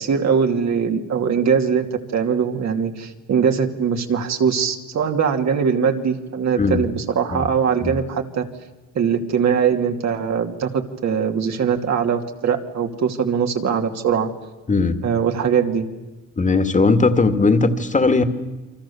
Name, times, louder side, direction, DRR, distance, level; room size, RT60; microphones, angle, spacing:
voice 1, 0.0-1.9 2.1-8.4 8.9-14.3 15.0-15.9, right 6 dB, 60° right, 4 dB, 2.7 m, -21 dB
voice 2, 14.7-15.0 16.4-18.2, left 3 dB, 25° left, 8 dB, 2.3 m, -18 dB
29.0 x 24.5 x 7.2 m, 1.2 s
cardioid pair, 90°, 30 cm